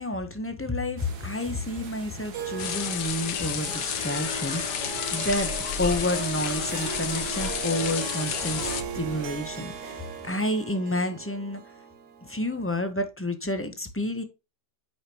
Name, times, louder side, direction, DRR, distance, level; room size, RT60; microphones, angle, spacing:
voice 1, 0.0-5.5 5.8-11.6 12.2-14.2, left 1 dB, 15° left, 0.5 m, -30 dB
sound 1, 1.0-10.6, right 4 dB, 70° right, 1.8 m, -43 dB
Harp, 2.3-12.9, right 7 dB, 85° right, 1.7 m, -39 dB
sound 2, 2.6-8.8, left 8 dB, 80° left, 1.5 m, -31 dB
9.6 x 5.0 x 2.9 m
omnidirectional pair, 1.8 m